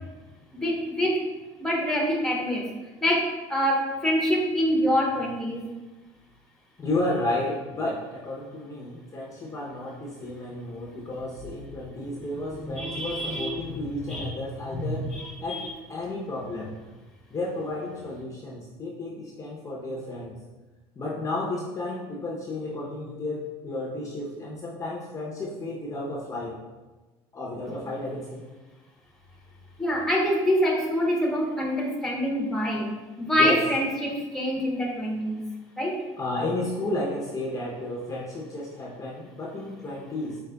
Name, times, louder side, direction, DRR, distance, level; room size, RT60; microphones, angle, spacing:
voice 1, 0.5-1.2 1.6-2.6 3.0-5.6 12.3-13.7 14.1-14.3 14.7-15.2 15.5-15.7 29.8-35.4 35.8-36.0, equal, 5° left, -2 dB, 0.9 m, -26 dB
voice 2, 6.8-15.1 15.4-16.7 17.3-20.3 21.0-26.5 27.3-28.4 33.4-33.6 36.2-40.4, left 2 dB, 30° left, -3 dB, 0.7 m, -32 dB
4.9 x 3.2 x 2.2 m, 1.2 s
supercardioid pair, 105°, 11 cm